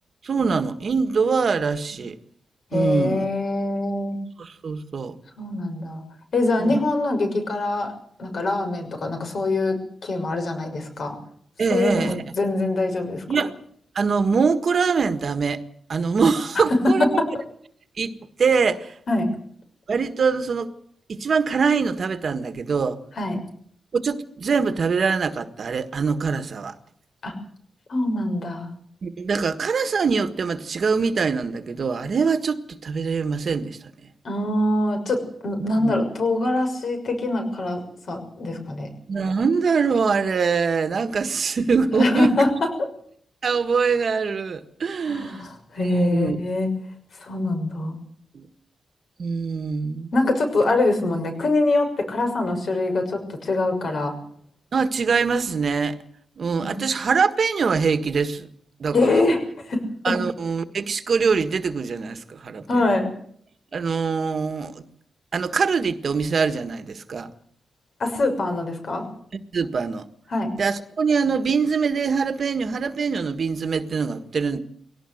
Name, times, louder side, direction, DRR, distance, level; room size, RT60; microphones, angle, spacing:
voice 1, 0.2-2.2 2.7-3.3 4.4-5.1 6.6-6.8 11.6-12.2 13.3-13.6 13.9-15.6 15.9-17.2 18.0-18.1 18.4-18.9 19.9-20.7 21.1-23.0 23.9-26.7 29.0-33.8 35.8-36.0 39.1-42.3 43.4-45.4 45.8-46.4 48.3-48.5 49.2-50.1 54.7-56.0 56.4-58.5 58.8-59.2 60.0-62.9 63.7-64.8 65.3-67.3 69.5-70.1 70.5-74.6, right 5 dB, 55° right, 1.6 m, -23 dB
voice 2, 2.7-4.2 5.4-6.0 6.3-7.9 8.2-9.8 10.0-11.2 11.7-13.2 16.8-17.3 19.1-19.3 23.2-23.4 27.2-27.3 27.9-28.7 34.2-37.8 38.1-38.9 41.9-42.9 45.0-46.7 47.2-48.0 50.1-54.1 56.6-56.8 58.9-59.4 59.7-60.2 62.7-63.1 68.0-69.0 70.3-70.5, left 2 dB, 55° left, 6.3 m, -23 dB
21.0 x 18.0 x 7.9 m
wide cardioid pair, 120°, 0 cm